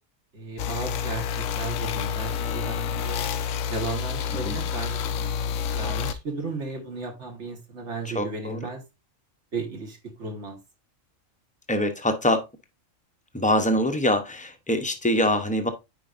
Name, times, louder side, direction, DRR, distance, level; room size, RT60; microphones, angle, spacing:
voice 1, 0.3-3.2 3.7-5.0 5.8-8.8 9.5-10.6, right 3 dB, 60° right, 1.9 m, -34 dB
sound 1, 0.6-6.1, left 7 dB, 85° left, 1.0 m, -29 dB
voice 2, 8.0-8.6 11.7-12.4 13.3-15.7, left 1 dB, 10° left, 0.7 m, -24 dB
9.1 x 4.8 x 2.5 m
omnidirectional pair, 1.4 m